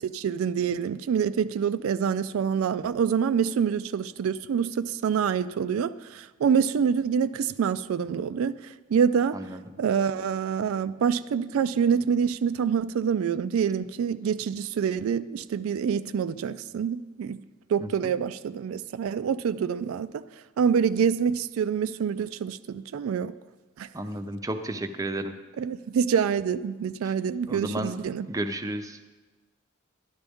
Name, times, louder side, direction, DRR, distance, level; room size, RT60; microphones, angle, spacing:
voice 1, 0.0-9.4 9.8-17.4 17.7-20.2 20.6-23.3 23.8-23.9 25.6-28.3, right 7 dB, 80° right, 13 dB, 0.3 m, -26 dB
voice 2, 17.8-18.1 23.9-25.3 27.5-27.9 28.3-29.0, right 1 dB, 15° right, 7 dB, 0.6 m, -32 dB
11.5 x 11.0 x 3.5 m, 1.2 s
head